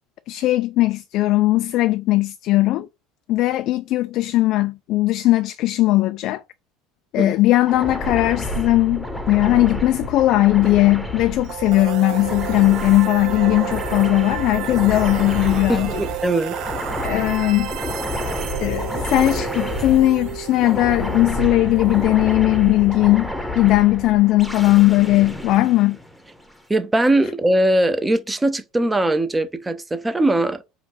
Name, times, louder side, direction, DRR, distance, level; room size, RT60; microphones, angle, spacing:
voice 1, 0.3-2.9 3.3-6.4 7.1-16.0 17.0-17.7 18.6-26.0, left 17 dB, 55° left, 0.3 m, -18 dB
sound 1, 7.7-26.5, left 1 dB, 5° left, 1.0 m, -29 dB
sound 2, 11.4-23.3, right 12 dB, 55° right, 0.4 m, -32 dB
voice 2, 15.7-16.6 26.7-30.6, right 1 dB, 15° right, 0.7 m, -20 dB
5.0 x 2.4 x 3.3 m
hypercardioid pair, 70°, 0 cm